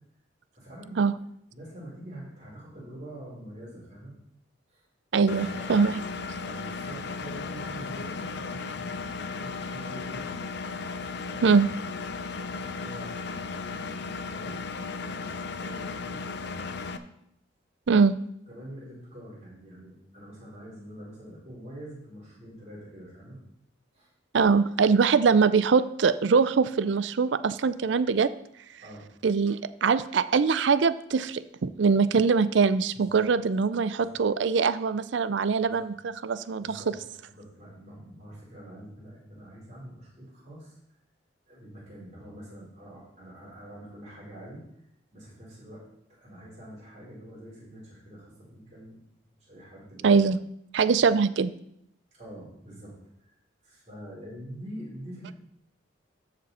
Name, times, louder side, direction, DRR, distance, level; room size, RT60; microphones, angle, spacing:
voice 1, 0.5-1.1 1.5-4.2 4.7-4.8 5.3-5.9 6.4-10.4 11.3-11.7 12.1-16.3 18.5-23.4 23.9-24.1 28.8-29.0 33.1-33.2 34.0-34.2 35.6-35.9 36.5-37.0 37.3-40.7 41.5-44.6 45.1-49.0 49.5-50.2 52.1-52.9 53.2-53.4 53.6-55.3, equal, 35° right, -6 dB, 4.5 m, -45 dB
voice 2, 5.1-6.0 11.4-11.7 17.9-18.1 24.3-28.3 29.2-36.9 50.0-50.4 50.7-51.5, right 5 dB, 65° right, 14 dB, 0.4 m, -23 dB
Engine, 5.3-17.0, left 4 dB, 60° left, 0.6 m, -35 dB
14.0 x 5.2 x 4.2 m, 0.75 s
head